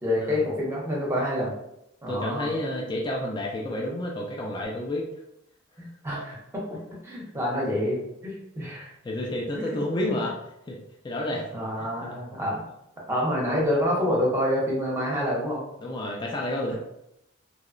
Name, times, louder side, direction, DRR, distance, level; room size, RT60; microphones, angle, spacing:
voice 1, 0.0-1.5 2.0-2.5 5.8-6.8 7.0-8.9 9.5-10.2 11.5-12.6 13.1-15.6, equal, 15° right, -4 dB, 0.7 m, -27 dB
voice 2, 2.1-5.1 9.0-10.3 10.7-10.8 11.0-11.5 11.8-12.2 15.8-16.7, left 1 dB, 20° left, -2 dB, 0.3 m, -30 dB
2.7 x 2.0 x 2.4 m, 0.83 s
head